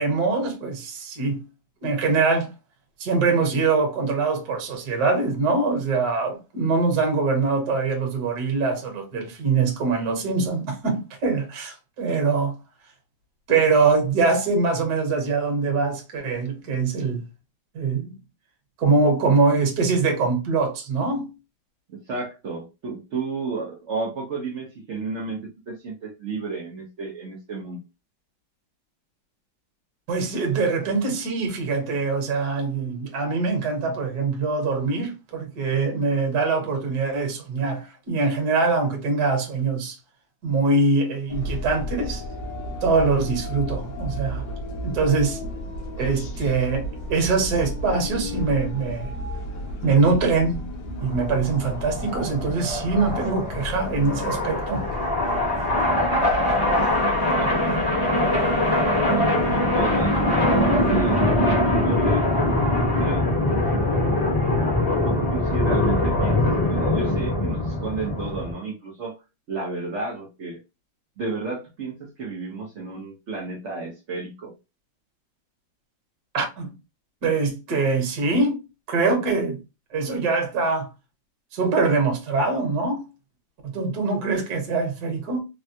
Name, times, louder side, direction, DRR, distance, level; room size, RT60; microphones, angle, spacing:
voice 1, 0.0-1.4 1.8-2.5 3.0-12.5 13.5-17.2 17.7-18.1 18.8-21.3 30.1-40.0 40.4-42.2 42.8-44.4 44.8-45.4 46.0-49.1 49.8-50.6 50.8-54.9 76.3-76.7 77.2-78.6 78.9-79.6 79.9-80.9 81.5-83.0 83.6-85.4, right 4 dB, 55° right, 1.4 m, -23 dB
voice 2, 21.9-27.8 57.4-57.8 59.0-60.5 60.9-62.3 63.0-63.3 65.0-69.2 69.5-70.6 71.2-74.5, right 4 dB, 85° right, 0.6 m, -32 dB
sound 1, 41.3-61.2, left 1 dB, 60° left, 0.9 m, -34 dB
sound 2, 51.0-68.5, left 1 dB, 20° left, 0.5 m, -22 dB
3.4 x 2.2 x 2.6 m
omnidirectional pair, 2.2 m